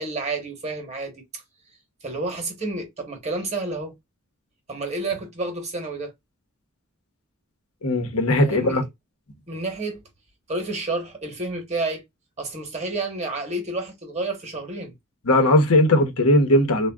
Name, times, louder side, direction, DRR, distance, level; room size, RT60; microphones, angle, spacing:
voice 1, 0.0-1.4 2.0-3.9 4.7-6.1 8.4-8.8 9.5-10.0 10.5-12.0 12.4-14.9, right 2 dB, 30° right, 0.9 m, -30 dB
voice 2, 7.8-8.8 15.2-16.9, left 1 dB, 85° left, 0.9 m, -18 dB
3.5 x 2.2 x 2.2 m
head